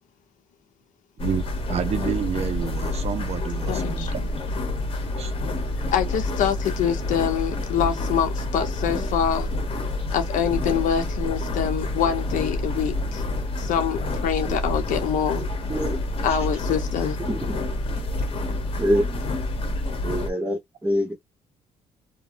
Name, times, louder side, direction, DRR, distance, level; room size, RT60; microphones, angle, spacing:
sound 1, 1.2-20.3, left 2 dB, 40° left, 1.0 m, -28 dB
voice 1, 1.2-4.3 4.8-5.3, right 8 dB, 50° right, 0.5 m, -30 dB
voice 2, 3.7-4.1 5.9-9.5 10.1-13.2 13.6-15.4 16.2-17.2, left 8 dB, 75° left, 0.7 m, -25 dB
voice 3, 15.4-16.0 16.3-16.4 17.2-17.6 17.9-18.0 18.8-19.2 20.0-21.1, equal, 10° right, 1.1 m, -26 dB
2.8 x 2.1 x 2.5 m
supercardioid pair, 70°, 13 cm